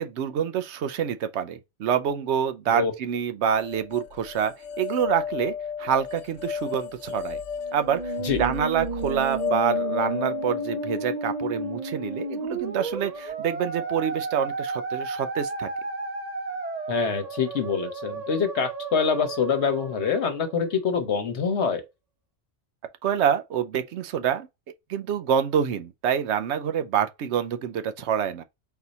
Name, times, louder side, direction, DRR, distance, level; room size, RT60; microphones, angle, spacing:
voice 1, 0.0-7.4 7.7-8.1 8.4-15.7 23.0-24.5 24.9-28.4, right 8 dB, 75° right, 0.9 m, -27 dB
sound 1, 3.6-12.8, left 7 dB, 90° left, 1.0 m, -33 dB
Musical instrument, 7.6-21.0, right 3 dB, 40° right, 0.8 m, -33 dB
voice 2, 16.9-21.8, left 6 dB, 70° left, 1.2 m, -25 dB
4.0 x 2.7 x 4.0 m
omnidirectional pair, 1.2 m